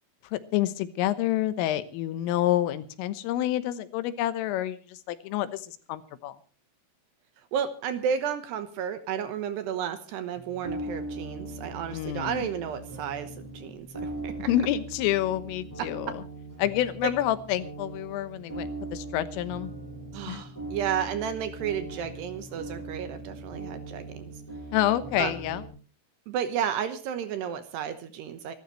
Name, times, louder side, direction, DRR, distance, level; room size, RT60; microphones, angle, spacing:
voice 1, 0.3-6.4 11.9-12.5 14.5-16.2 16.6-19.7 20.3-20.4 24.7-25.6, left 13 dB, 85° left, 12 dB, 3.7 m, -28 dB
voice 2, 7.5-14.5 15.8-15.9 20.1-24.3 25.2-25.4 26.3-28.5, right 8 dB, 70° right, 10 dB, 2.9 m, -32 dB
sound 1, 10.4-25.7, right 2 dB, 5° left, 7.4 m, -40 dB
26.0 x 12.5 x 3.2 m, 0.38 s
omnidirectional pair, 5.7 m